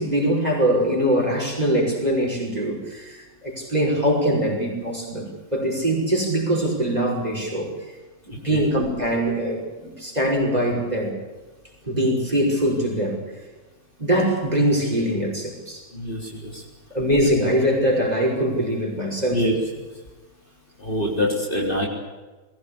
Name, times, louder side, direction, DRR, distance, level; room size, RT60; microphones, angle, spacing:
voice 1, 0.0-3.2 3.4-7.7 8.4-11.1 11.8-13.2 14.0-15.8 16.9-19.4, equal, 25° right, 0 dB, 5.7 m, -22 dB
voice 2, 8.3-8.6 15.9-16.6 19.3-19.6 20.8-21.9, equal, 35° left, -1 dB, 4.2 m, -25 dB
21.0 x 17.0 x 8.6 m, 1.2 s
omnidirectional pair, 1.5 m